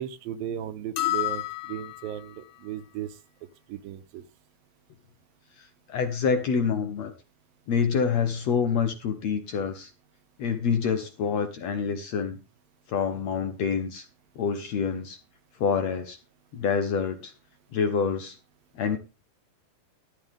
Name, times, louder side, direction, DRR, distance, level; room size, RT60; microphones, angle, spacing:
voice 1, 0.0-3.2 3.7-4.2, right 10 dB, 80° right, 12 dB, 2.6 m, -36 dB
sound 1, 1.0-2.3, left 16 dB, 85° left, 3.2 m, -30 dB
voice 2, 5.6-7.1 7.7-9.9 10.4-12.4 12.9-14.1 14.4-15.2 15.6-16.2 16.5-17.3 17.7-18.4 18.8-19.0, left 6 dB, 65° left, 7 dB, 1.8 m, -27 dB
13.0 x 11.0 x 3.6 m, 0.29 s
omnidirectional pair, 4.1 m